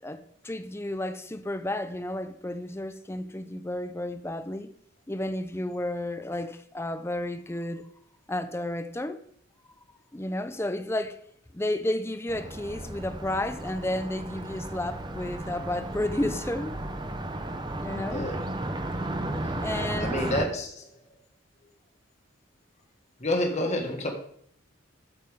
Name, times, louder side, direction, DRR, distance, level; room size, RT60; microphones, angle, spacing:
voice 1, 0.0-4.7 5.1-7.9 8.3-9.2 10.1-11.2 11.5-16.8 17.8-18.3 19.6-20.2, left 1 dB, 10° left, 0.5 m, -32 dB
Car passing by, 12.3-20.5, right 1 dB, 20° right, 0.8 m, -34 dB
voice 2, 18.1-18.4 19.0-19.2 20.0-20.9 23.2-24.1, left 1 dB, 35° left, 1.9 m, -29 dB
13.5 x 8.7 x 3.6 m
head